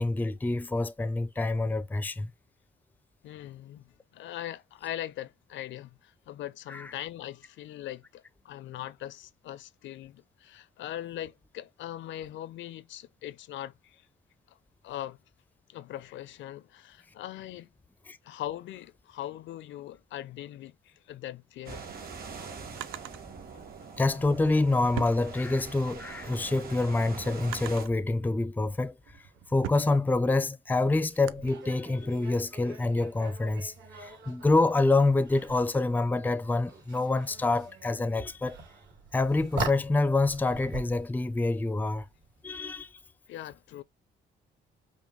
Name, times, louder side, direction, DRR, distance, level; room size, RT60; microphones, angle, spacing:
voice 1, 0.0-2.3 6.7-6.9 18.1-18.2 24.0-29.0 29.5-33.7 34.0-38.6 39.1-42.1 42.4-42.9, left 2 dB, 10° left, 0.4 m, -27 dB
voice 2, 3.2-3.8 4.1-14.1 14.5-14.6 14.8-15.2 15.7-17.7 18.2-21.8 43.3-43.8, left 12 dB, 70° left, 0.5 m, -40 dB
sound 1, 21.6-27.9, right 5 dB, 50° right, 1.5 m, -43 dB
Drawer open or close, 21.6-23.2 24.3-25.9 26.3-28.0 28.7-31.5, right 14 dB, 90° right, 0.4 m, -43 dB
sound 2, 31.4-42.7, right 2 dB, 75° right, 3.1 m, -42 dB
5.3 x 2.2 x 3.1 m
cardioid pair, 90°, 20 cm